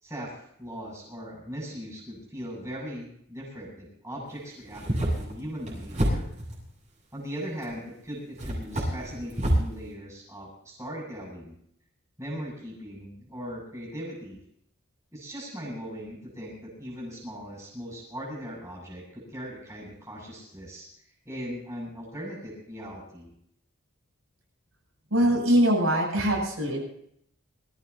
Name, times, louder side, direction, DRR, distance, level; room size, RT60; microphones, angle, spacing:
voice 1, 0.0-6.3 7.1-11.5 12.2-14.4 15.1-20.9 21.3-23.3, equal, 15° right, -4 dB, 7.4 m, -39 dB
sound 1, 4.6-6.6 7.6-7.7 8.4-9.7, right 1 dB, 35° right, 7.5 m, -28 dB
voice 2, 25.1-26.8, equal, 75° right, -1 dB, 7.7 m, -22 dB
26.5 x 15.5 x 2.8 m, 0.69 s
head